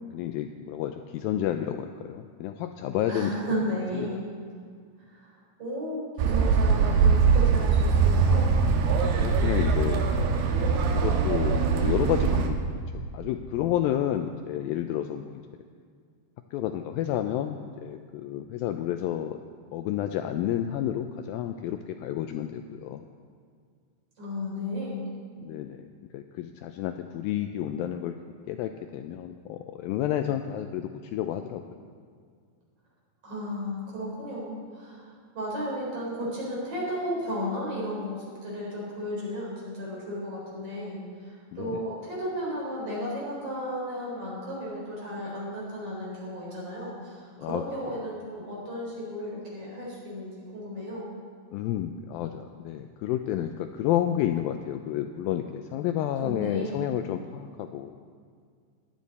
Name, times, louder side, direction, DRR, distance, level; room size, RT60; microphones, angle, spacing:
voice 1, 0.1-3.3 3.9-4.2 9.2-10.1 10.7-12.6 13.1-15.4 16.5-19.4 19.7-23.1 25.4-25.9 26.1-28.2 28.5-31.6 41.5-41.8 47.4-47.6 51.5-57.9, left 11 dB, 80° left, 7 dB, 2.1 m, -30 dB
voice 2, 3.1-4.2 5.1-8.5 24.2-25.1 33.2-51.1 56.2-56.8, equal, 40° right, -5 dB, 4.9 m, -34 dB
sound 1, 6.2-12.5, right 5 dB, 80° right, 3.0 m, -22 dB
16.5 x 11.5 x 4.2 m, 2.1 s
omnidirectional pair, 4.5 m